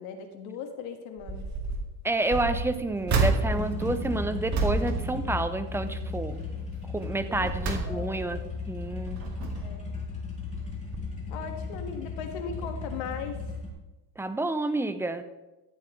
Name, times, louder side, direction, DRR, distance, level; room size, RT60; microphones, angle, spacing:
voice 1, 0.0-1.5 7.4-7.5 7.9-8.1 9.6-9.8 11.3-13.4, left 6 dB, 70° left, 5 dB, 1.8 m, -38 dB
sound 1, 1.2-1.8 2.2-5.9 6.3-6.6 7.1-8.4 8.9-9.8 10.5-10.7 10.9-11.0, right 3 dB, 35° right, 2.2 m, -30 dB
voice 2, 2.0-6.5 6.9-8.4 8.7-9.2 14.2-15.2, right 2 dB, 5° right, 10 dB, 0.4 m, -29 dB
sound 2, 3.5-13.7, left 3 dB, 15° left, 3.2 m, -35 dB
13.5 x 9.6 x 3.2 m, 1.1 s
supercardioid pair, 115°, 48 cm